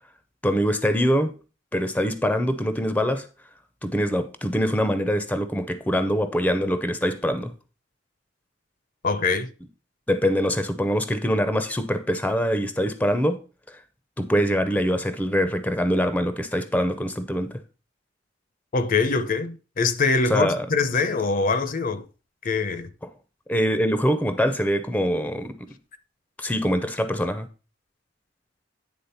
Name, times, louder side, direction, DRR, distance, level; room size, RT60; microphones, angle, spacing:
voice 1, 0.4-1.3 1.7-3.3 3.8-7.5 10.1-13.4 13.7-13.8 14.2-17.6 20.3-20.7 23.5-25.7 26.4-27.5, equal, 10° left, 0.6 m, -24 dB
voice 2, 9.0-9.5 18.7-22.0 22.4-22.9, left 4 dB, 45° left, 0.6 m, -23 dB
9.6 x 3.7 x 5.6 m
head